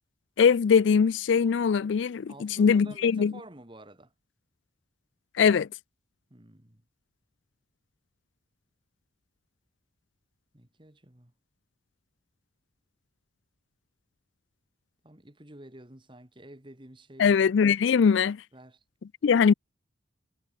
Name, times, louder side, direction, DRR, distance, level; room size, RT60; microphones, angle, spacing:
voice 1, 0.4-3.3 5.4-5.7 17.2-18.4 19.2-19.5, left 6 dB, 65° left, 0.4 m, -21 dB
voice 2, 2.3-4.1 6.3-6.8 10.5-11.3 15.0-17.4 18.5-18.8, right 1 dB, 25° right, 1.9 m, -49 dB
head